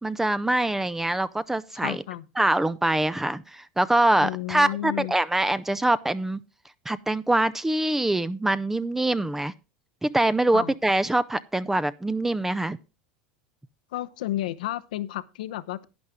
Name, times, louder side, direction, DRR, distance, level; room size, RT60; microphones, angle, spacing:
voice 1, 0.0-2.0 2.4-6.4 6.9-9.5 10.0-12.8, right 1 dB, 10° right, 0.5 m, -24 dB
voice 2, 1.7-2.2 4.2-5.1 10.5-10.7 13.9-15.9, left 14 dB, 85° left, 0.8 m, -32 dB
11.0 x 9.5 x 3.6 m
supercardioid pair, 115°, 4 cm